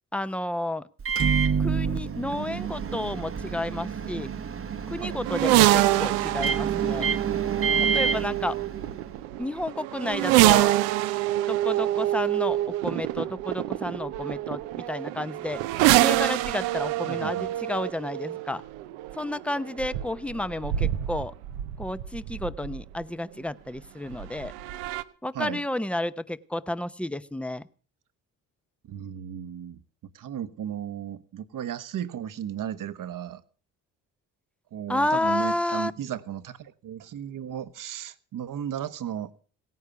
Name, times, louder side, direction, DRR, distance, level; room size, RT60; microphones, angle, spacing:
voice 1, 0.1-0.8 1.6-4.3 4.9-7.1 7.8-8.6 9.4-10.7 11.5-15.6 16.0-18.6 19.1-21.3 21.8-24.5 25.2-27.6 34.9-35.9, left 1 dB, 5° left, 0.8 m, -31 dB
Microwave oven, 1.0-9.2, right 6 dB, 35° right, 1.0 m, -28 dB
sound 1, 5.2-23.0 24.1-25.0, right 15 dB, 90° right, 0.8 m, -26 dB
voice 2, 16.8-17.5 25.3-25.6 28.9-29.8 30.1-33.4 34.7-39.3, right 10 dB, 60° right, 1.1 m, -35 dB
17.0 x 9.5 x 6.8 m
supercardioid pair, 55°, 37 cm